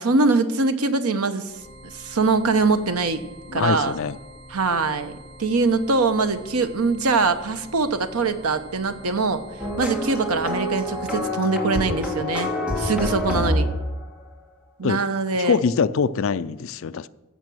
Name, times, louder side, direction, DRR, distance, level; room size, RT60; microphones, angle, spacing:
voice 1, 0.0-1.5 1.9-3.2 3.5-4.0 4.5-5.1 5.4-9.4 9.8-12.5 12.8-13.7 14.8-15.6, right 3 dB, 90° right, 0.9 m, -22 dB
sound 1, 1.4-11.4, equal, 50° right, 4.8 m, -45 dB
voice 2, 3.5-4.2 13.2-13.5 14.8-15.0 15.4-17.1, left 5 dB, 65° left, 0.4 m, -24 dB
sound 2, 9.6-14.0, left 1 dB, 5° right, 2.1 m, -26 dB
15.5 x 6.0 x 6.2 m
head